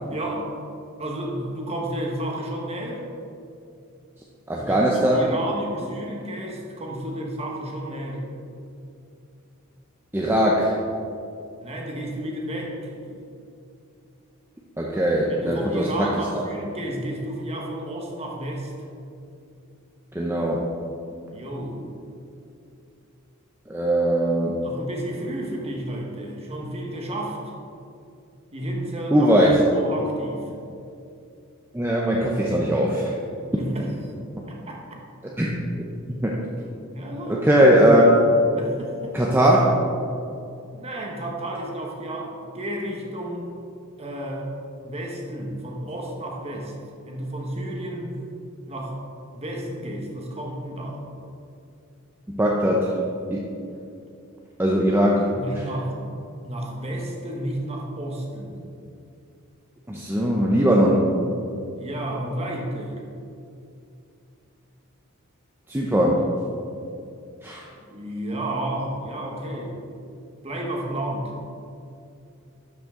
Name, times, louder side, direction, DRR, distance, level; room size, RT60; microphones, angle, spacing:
voice 1, 0.1-0.5 1.0-3.0 4.6-8.2 11.6-13.2 15.3-18.7 21.3-21.8 24.6-27.4 28.5-29.3 29.7-30.5 33.6-33.9 34.5-34.8 36.9-37.6 38.5-39.2 40.7-43.6 44.0-44.5 44.8-46.7 47.0-48.2 48.7-49.0 49.3-51.0 55.3-55.9 56.4-58.6 61.8-63.0 67.7-69.8 70.4-71.3, right 1 dB, 30° right, 0 dB, 1.2 m, -32 dB
voice 2, 4.5-5.3 10.1-10.8 14.8-16.2 20.1-20.8 23.7-24.6 29.1-29.7 31.7-33.1 35.4-35.5 36.2-36.4 37.3-38.1 39.1-39.7 52.3-52.9 53.3-53.5 54.6-55.3 55.5-55.7 59.9-61.0 65.7-66.3 67.4-67.6, right 1 dB, 10° right, -3 dB, 0.6 m, -20 dB
12.0 x 5.6 x 3.7 m, 2.6 s
head